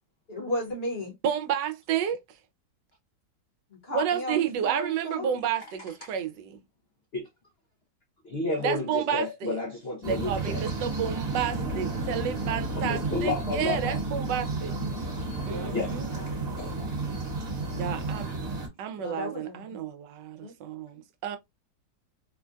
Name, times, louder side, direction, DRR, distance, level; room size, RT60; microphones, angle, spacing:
voice 1, 0.3-1.1 3.7-5.3 15.4-16.9 19.0-19.8 20.4-20.5, left 1 dB, 40° left, 1.1 m, -35 dB
voice 2, 1.2-2.2 3.9-6.6 8.6-9.6 10.0-14.7 15.5-16.1 17.7-18.3 18.8-21.4, right 8 dB, 80° right, 1.2 m, -31 dB
voice 3, 8.2-10.6 12.8-14.0 15.7-15.9 16.6-16.8, left 3 dB, 65° left, 0.6 m, -31 dB
sound 1, 10.0-18.7, right 3 dB, 40° right, 1.1 m, -32 dB
3.7 x 2.2 x 2.4 m
omnidirectional pair, 1.9 m